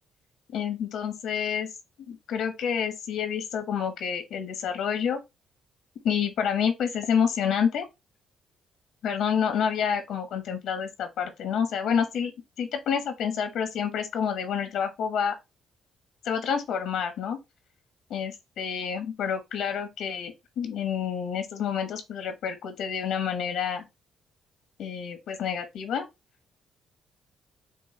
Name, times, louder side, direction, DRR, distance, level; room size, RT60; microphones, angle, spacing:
voice 1, 0.5-1.7 2.1-5.2 6.0-7.8 9.0-12.3 12.6-15.4 16.2-17.4 18.1-23.8 24.8-26.0, left 7 dB, 80° left, 1.2 m, -28 dB
6.2 x 2.3 x 3.2 m
cardioid pair, 90°, 0 cm